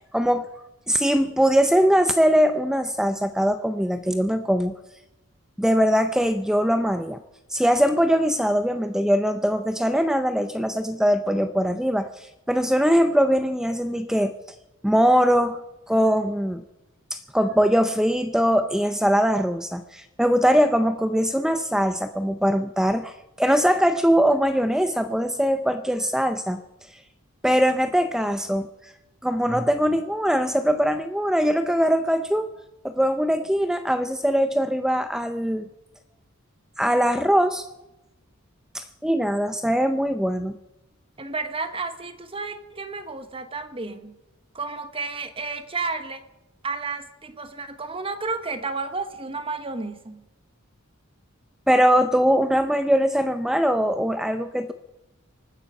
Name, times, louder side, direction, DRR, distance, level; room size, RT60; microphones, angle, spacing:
voice 1, 0.1-0.5 0.9-4.7 5.6-7.2 7.5-14.3 14.8-15.6 15.9-16.6 17.1-26.6 27.4-28.9 29.2-32.5 32.8-35.7 36.8-37.7 38.7-40.5 51.7-54.7, equal, 5° right, 0.5 m, -21 dB
voice 2, 41.2-44.2 44.5-46.2 46.6-50.2, right 3 dB, 25° right, 1.0 m, -32 dB
24.5 x 9.7 x 5.5 m
head